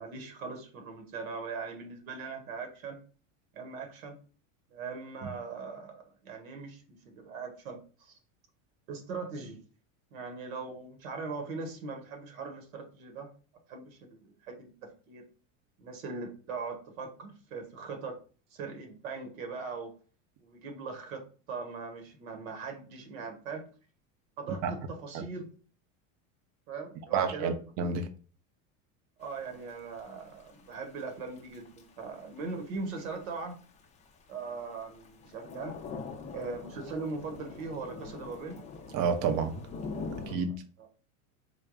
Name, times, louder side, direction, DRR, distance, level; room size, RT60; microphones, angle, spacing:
voice 1, 0.0-3.0 3.5-4.2 4.7-8.2 8.9-9.6 10.1-13.3 13.7-15.3 15.8-18.2 18.5-19.9 20.4-23.7 24.4-25.5 26.7-27.6 29.2-33.6 34.3-35.8 36.3-38.6 40.1-40.4 40.8-40.9, right 4 dB, 80° right, 1.2 m, -40 dB
voice 2, 27.1-28.1 38.9-39.6 40.3-40.5, right 6 dB, 45° right, 0.7 m, -29 dB
Thunder / Rain, 29.2-40.3, left 4 dB, 20° left, 0.4 m, -44 dB
3.5 x 2.2 x 3.7 m
supercardioid pair, 115°, 41 cm